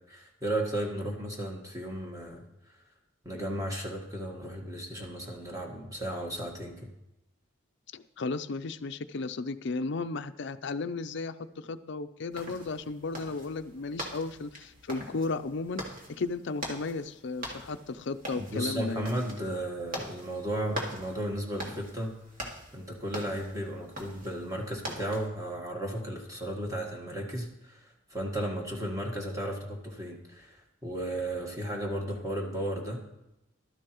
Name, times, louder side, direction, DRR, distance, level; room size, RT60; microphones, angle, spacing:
voice 1, 0.1-2.4 3.2-6.9 18.4-22.2 22.7-33.0, right 1 dB, 15° right, 0 dB, 1.5 m, -34 dB
voice 2, 7.9-15.8 16.1-19.1, left 3 dB, 60° left, 10 dB, 0.5 m, -34 dB
sound 1, 12.3-25.3, right 1 dB, 45° right, 2.1 m, -43 dB
14.0 x 12.5 x 3.1 m, 0.88 s
head